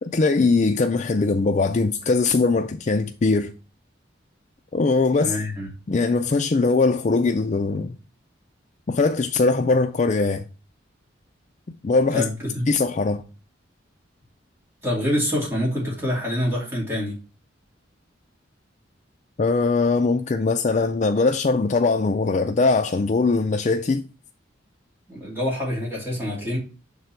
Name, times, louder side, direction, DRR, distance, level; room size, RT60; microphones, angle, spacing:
voice 1, 0.0-3.5 4.7-5.4 5.9-8.0 8.9-10.5 11.8-12.3 12.7-13.2 19.4-24.0, left 3 dB, 35° left, 0.4 m, -21 dB
voice 2, 5.2-5.7 12.1-12.7 14.8-17.1 25.1-26.6, left 1 dB, 10° right, 2.4 m, -26 dB
6.4 x 3.9 x 4.4 m
head